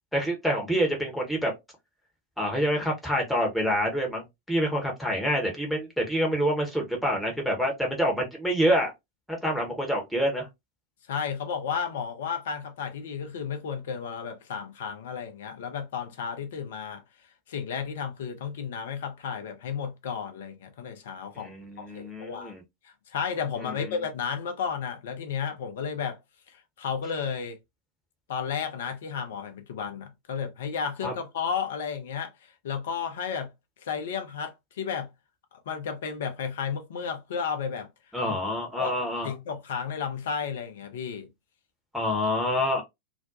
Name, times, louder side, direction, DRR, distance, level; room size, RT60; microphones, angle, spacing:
voice 1, 0.1-1.5 2.4-8.9 9.4-10.5 21.3-22.6 23.6-23.9 31.0-31.1 38.1-39.3 41.9-42.8, equal, ahead, 0.9 m, -27 dB
voice 2, 11.1-17.0 17.5-22.5 22.8-26.2 26.5-27.6 28.3-33.5 33.8-35.1 35.5-37.9 38.3-38.4 38.8-39.0 39.2-41.3, left 6 dB, 60° left, 0.5 m, -33 dB
2.4 x 2.1 x 2.6 m
figure-of-eight pair, 90°, 0 cm